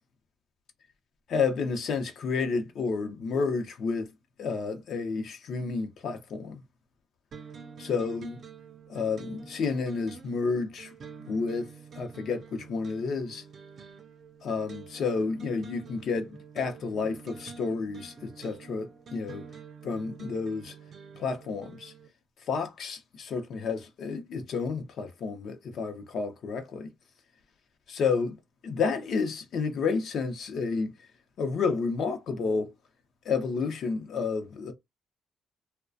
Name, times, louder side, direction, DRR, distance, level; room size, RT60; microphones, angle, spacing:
voice 1, 1.3-4.1 4.4-6.6 7.8-8.4 8.9-10.9 11.2-13.4 14.4-19.4 19.8-20.8 21.2-21.9 22.5-26.9 27.9-28.4 28.6-30.9 31.4-32.7 33.2-34.7, left 4 dB, 65° left, 0.6 m, -30 dB
sound 1, 7.3-22.1, right 6 dB, 55° right, 0.5 m, -48 dB
2.3 x 2.1 x 2.4 m
cardioid pair, 90°, 0 cm